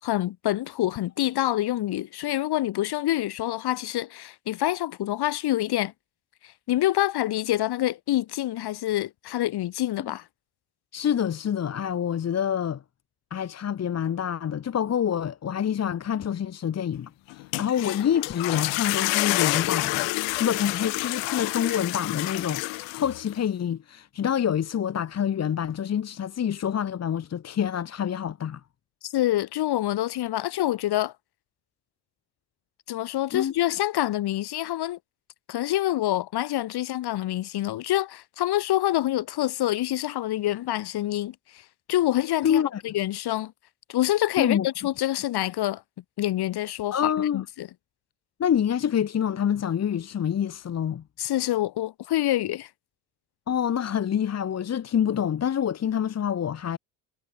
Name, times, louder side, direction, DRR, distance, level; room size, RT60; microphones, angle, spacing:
voice 1, 0.0-5.9 6.7-10.2 29.0-31.1 32.9-35.0 35.5-41.6 41.9-43.5 43.9-45.8 46.2-47.7 51.2-52.7, left 14 dB, 60° left, 5.6 m, -26 dB
voice 2, 10.9-12.8 13.3-28.6 33.3-33.5 42.4-42.8 44.4-44.7 46.9-47.4 48.4-51.0 53.5-56.8, left 9 dB, 35° left, 1.8 m, -27 dB
sound 1, 17.3-23.4, left 29 dB, 85° left, 3.8 m, -28 dB
cardioid pair, 110°, 44 cm